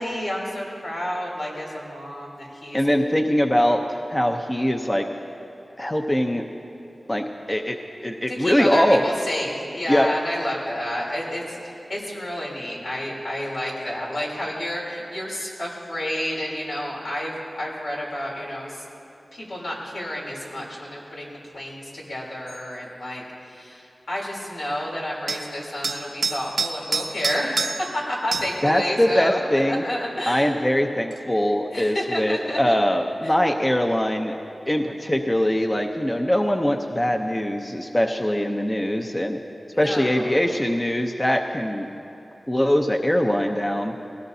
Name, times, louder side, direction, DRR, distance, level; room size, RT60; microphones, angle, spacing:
voice 1, 0.0-2.8 8.3-18.8 19.3-30.5 31.7-32.7 33.2-33.3 39.7-40.6, left 1 dB, 85° left, -5 dB, 3.4 m, -30 dB
voice 2, 2.7-3.8 4.1-5.0 5.8-6.5 7.1-7.8 8.0-9.0 9.9-10.1 28.6-29.8 30.3-34.4 34.7-39.4 39.8-41.9 42.5-43.9, equal, 20° left, 3 dB, 0.7 m, -22 dB
sound 1, 22.5-22.7 25.3-25.5 25.8-28.0 28.3-28.6 31.1-31.2, right 4 dB, 85° right, 0.7 m, -27 dB
20.0 x 17.0 x 2.8 m, 2.8 s
wide cardioid pair, 70°, 0 cm